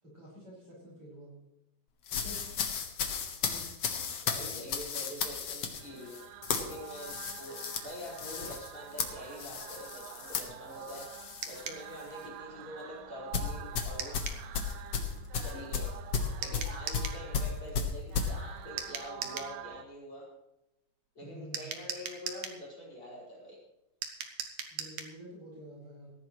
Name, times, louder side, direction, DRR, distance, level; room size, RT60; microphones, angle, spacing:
voice 1, 0.0-1.3 3.5-3.7 21.2-21.7 24.7-26.1, equal, 30° right, -5 dB, 6.3 m, -49 dB
sound 1, 2.1-11.7 12.0-12.3 13.3-18.3, left 6 dB, 70° left, 1.5 m, -34 dB
voice 2, 2.1-2.7 3.8-14.2 15.4-15.9 16.4-20.3 21.1-23.6, left 1 dB, 30° left, -4 dB, 6.1 m, -46 dB
sound 2, 5.5-19.8, right 11 dB, 80° right, 2.9 m, -48 dB
sound 3, 11.4-11.8 14.0-14.4 16.4-17.2 18.8-19.5 21.5-22.6 24.0-25.1, right 8 dB, 65° right, 2.2 m, -39 dB
19.5 x 15.0 x 3.2 m, 0.90 s
omnidirectional pair, 5.1 m